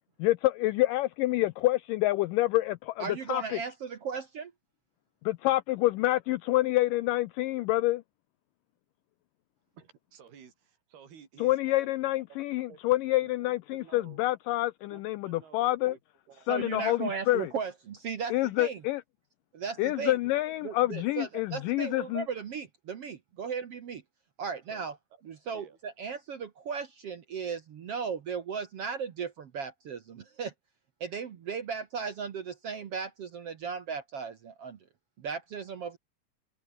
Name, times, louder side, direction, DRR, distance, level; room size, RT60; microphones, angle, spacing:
voice 1, 0.2-3.6 5.3-8.0 11.4-15.9 16.5-17.5 18.3-19.0 19.8-22.3, left 17 dB, 85° left, 1.9 m, -27 dB
voice 2, 3.0-4.5 16.5-18.8 19.5-20.2 20.6-24.0 24.4-24.9 25.2-30.5 31.0-34.8 35.2-36.0, right 6 dB, 60° right, 1.6 m, -36 dB
voice 3, 9.7-11.9 12.3-12.4 12.7-14.2 14.9-16.0 16.3-17.5 24.4-25.2 25.5-25.8, right 7 dB, 80° right, 5.7 m, -54 dB
omnidirectional pair, 4.4 m